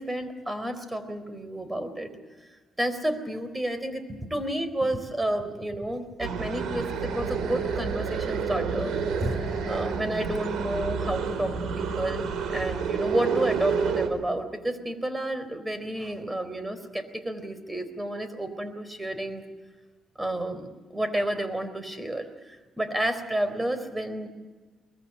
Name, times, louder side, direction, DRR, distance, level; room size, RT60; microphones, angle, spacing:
voice 1, 0.0-2.1 2.4-2.5 2.8-19.4 20.2-24.3, right 1 dB, 10° right, 10 dB, 4.0 m, -31 dB
sound 1, 6.2-14.1, right 6 dB, 75° right, 3.9 m, -29 dB
23.5 x 21.0 x 7.9 m, 1.3 s
cardioid pair, 90°, 0 cm